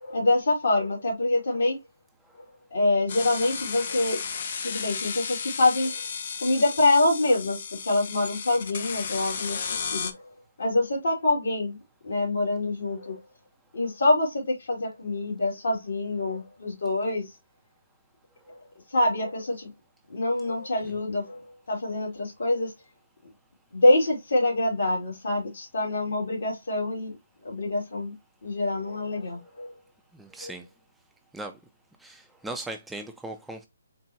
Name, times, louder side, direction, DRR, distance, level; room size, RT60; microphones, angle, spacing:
voice 1, 0.0-1.8 2.7-4.2 4.6-6.0 6.4-10.1 10.6-11.8 12.0-13.2 13.7-17.3 18.9-19.7 20.1-21.4 21.7-22.7 23.7-27.2 27.4-28.1 28.4-29.7 30.4-30.5, left 2 dB, 70° left, 2.4 m, -25 dB
sound 1, 3.1-10.1, left 6 dB, 50° left, 0.6 m, -34 dB
voice 2, 30.1-30.7 31.3-31.6 32.0-33.7, right 2 dB, 5° right, 0.4 m, -38 dB
4.3 x 3.4 x 2.7 m
figure-of-eight pair, 145°, 0 cm